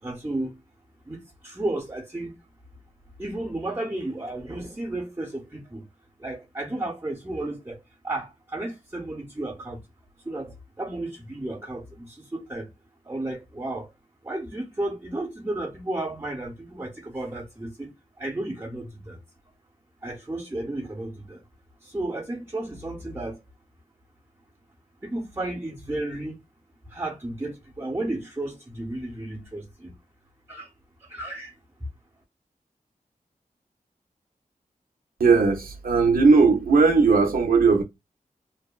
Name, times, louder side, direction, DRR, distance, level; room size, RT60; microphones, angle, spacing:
voice 1, 0.0-0.5 1.1-2.3 3.2-5.9 6.2-9.8 10.2-12.7 13.0-13.9 14.2-19.2 20.0-21.4 21.8-23.4 25.0-26.4 26.9-29.9 30.5-30.7 31.0-31.5, right 2 dB, 15° right, 0.6 m, -33 dB
voice 2, 35.2-37.8, right 4 dB, 85° right, 0.5 m, -18 dB
2.7 x 2.0 x 2.2 m
wide cardioid pair, 90°, 15 cm